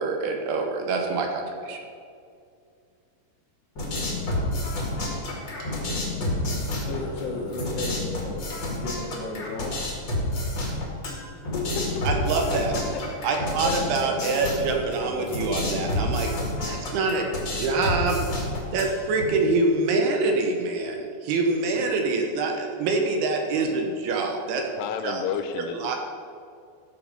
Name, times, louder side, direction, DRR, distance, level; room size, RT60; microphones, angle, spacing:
voice 1, 0.0-1.8 12.1-12.7 13.2-16.3 16.6-18.3 18.7-24.8 25.0-25.2 25.7-26.0, right 3 dB, 75° right, 2 dB, 2.8 m, -25 dB
sound 1, 3.8-19.2, left 1 dB, 35° left, 2.0 m, -30 dB
voice 2, 6.9-9.8 11.5-12.1 12.5-14.3, left 3 dB, 65° left, 0 dB, 2.5 m, -34 dB
voice 3, 24.8-26.0, left 7 dB, 80° left, 8 dB, 2.6 m, -30 dB
14.5 x 6.6 x 5.3 m, 2.3 s
omnidirectional pair, 4.9 m